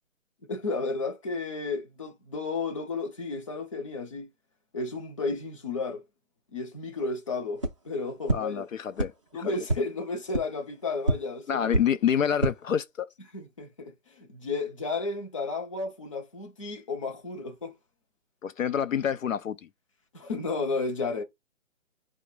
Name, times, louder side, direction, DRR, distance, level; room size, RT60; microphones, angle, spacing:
voice 1, 0.5-4.3 4.7-6.0 6.5-8.7 9.3-11.7 13.3-17.7 20.1-21.2, left 3 dB, 25° left, 0.6 m, -33 dB
sound 1, 7.6-7.7 8.3-8.4 9.0-9.1 9.6-9.8 10.3-10.4 11.0-11.1 11.7-11.8 12.3-12.5, right 2 dB, 25° right, 0.4 m, -25 dB
voice 2, 8.3-9.5 11.5-13.1 18.4-19.7, left 8 dB, 80° left, 0.6 m, -28 dB
5.0 x 2.1 x 4.6 m
figure-of-eight pair, 155°, 39 cm